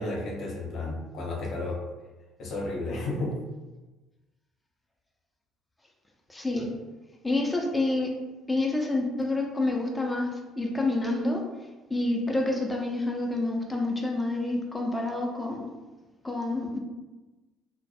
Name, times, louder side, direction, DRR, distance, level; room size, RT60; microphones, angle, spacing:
voice 1, 0.0-1.8 2.4-3.4 6.5-6.7, left 2 dB, 50° left, -3 dB, 0.7 m, -32 dB
voice 2, 6.3-6.7 7.2-8.1 8.5-11.5 11.9-15.7 16.2-16.8, left 2 dB, 15° left, 0 dB, 0.5 m, -28 dB
2.2 x 2.2 x 2.7 m, 1.2 s
hypercardioid pair, 55°, 0 cm